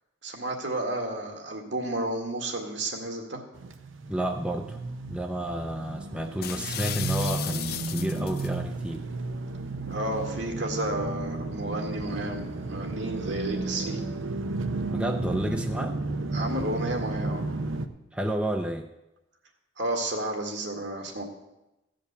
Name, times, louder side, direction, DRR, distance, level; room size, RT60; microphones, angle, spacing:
voice 1, 0.2-3.4 9.9-14.0 16.3-17.5 19.8-21.2, right 1 dB, 65° right, 2 dB, 2.0 m, -32 dB
sound 1, 3.5-17.9, right 3 dB, 85° right, 0.8 m, -33 dB
voice 2, 4.1-4.8 5.1-9.1 14.9-16.0 18.1-18.9, right 1 dB, 5° right, 4 dB, 0.5 m, -31 dB
sound 2, 6.4-8.5, left 11 dB, 50° left, 0.6 m, -35 dB
15.0 x 5.2 x 8.2 m, 0.95 s
head